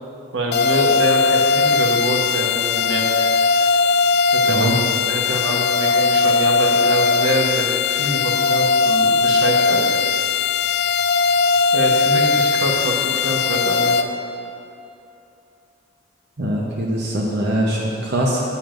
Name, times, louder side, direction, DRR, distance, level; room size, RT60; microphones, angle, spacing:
voice 1, 0.3-3.1 4.3-4.7 5.0-9.9 11.7-14.1, equal, 75° right, 0 dB, 1.1 m, -25 dB
sound 1, 0.5-14.0, left 4 dB, 55° left, 0.4 m, -18 dB
voice 2, 16.4-18.4, right 1 dB, 55° right, -4 dB, 0.8 m, -22 dB
9.7 x 9.2 x 2.5 m, 2.8 s
head